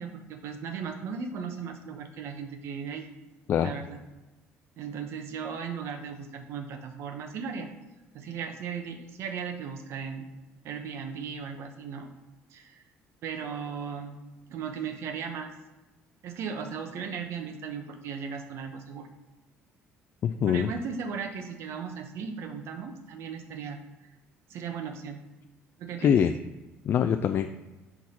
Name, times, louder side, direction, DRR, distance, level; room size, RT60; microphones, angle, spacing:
voice 1, 0.0-3.0 3.6-4.0 4.8-7.7 8.1-10.3 10.6-12.1 12.5-12.8 13.2-14.2 14.5-15.5 16.2-19.1 20.5-23.8 24.5-25.2 25.8-26.1, right 6 dB, 65° right, 6 dB, 1.0 m, -37 dB
voice 2, 20.2-20.7 26.0-26.3 26.8-27.5, left 8 dB, 50° left, 8 dB, 0.3 m, -23 dB
6.1 x 4.7 x 5.5 m, 1.1 s
cardioid pair, 120°, 5 cm